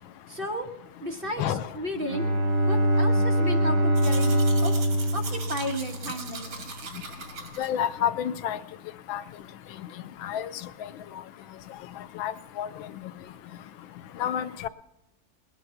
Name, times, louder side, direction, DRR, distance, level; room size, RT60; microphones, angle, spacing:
voice 1, 0.3-0.6 1.0-2.3 2.6-4.7 5.1-6.7, equal, 30° right, 1.3 m, -33 dB
Bowed string instrument, 1.9-6.5, right 1 dB, 50° right, 1.8 m, -24 dB
Domestic sounds home sounds, 4.0-7.7, right 4 dB, 80° right, 2.8 m, -40 dB
voice 2, 7.6-8.6 9.1-9.2 10.2-10.5 12.2-12.3 12.6-12.7 14.2-14.7, left 9 dB, 75° left, 1.4 m, -28 dB
20.5 x 9.3 x 5.7 m
omnidirectional pair, 2.2 m